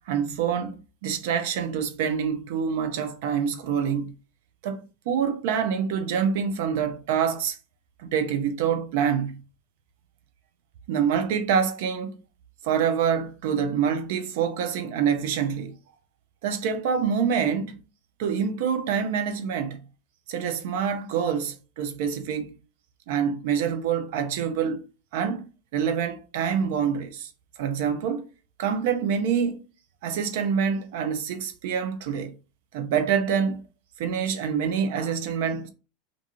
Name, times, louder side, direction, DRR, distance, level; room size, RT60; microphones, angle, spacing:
voice 1, 0.1-0.8 1.0-4.1 4.6-7.6 8.0-9.4 10.9-12.1 12.6-15.7 16.4-17.8 18.2-19.8 20.3-22.5 23.1-24.8 25.1-27.3 27.6-28.3 28.6-29.6 30.0-32.3 32.7-33.6 34.0-35.7, right 7 dB, 70° right, 0.5 m, -26 dB
2.5 x 2.4 x 2.9 m
hypercardioid pair, 90°, 0 cm